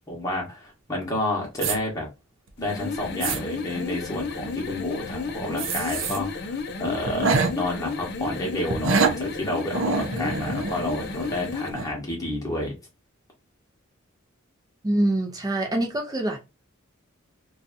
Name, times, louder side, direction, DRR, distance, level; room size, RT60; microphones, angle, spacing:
voice 1, 0.1-2.1 2.6-12.7, left 1 dB, 15° left, 1.0 m, -30 dB
sound 1, 1.6-1.8 2.5-2.6 3.0-3.4 5.6-6.2 6.6-6.7 7.1-7.5 8.7-9.2 9.7-11.4 11.7-11.9, right 4 dB, 65° right, 0.5 m, -25 dB
sound 2, 2.6-11.8, left 4 dB, 50° left, 0.4 m, -32 dB
voice 2, 14.8-16.4, right 1 dB, 15° right, 0.5 m, -25 dB
2.7 x 2.3 x 2.5 m
head